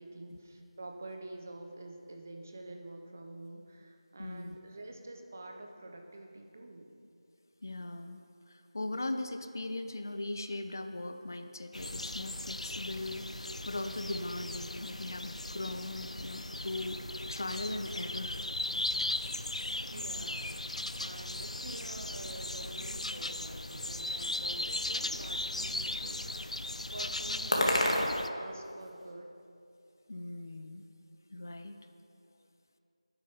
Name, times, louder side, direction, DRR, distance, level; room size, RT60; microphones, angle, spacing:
voice 1, 0.0-6.9 19.9-20.5 20.8-26.3 26.9-29.3, right 2 dB, 20° right, 3 dB, 0.7 m, -47 dB
voice 2, 4.2-4.6 7.6-8.2 8.5-17.0 17.3-18.4 30.1-30.8 31.3-31.8, left 2 dB, 30° left, 8 dB, 0.5 m, -39 dB
sound 1, 11.7-28.3, left 2 dB, 80° left, 0.6 m, -38 dB
sound 2, 21.9-29.1, left 1 dB, 55° left, 2.1 m, -36 dB
12.0 x 9.7 x 5.2 m, 2.5 s
figure-of-eight pair, 175°, 4 cm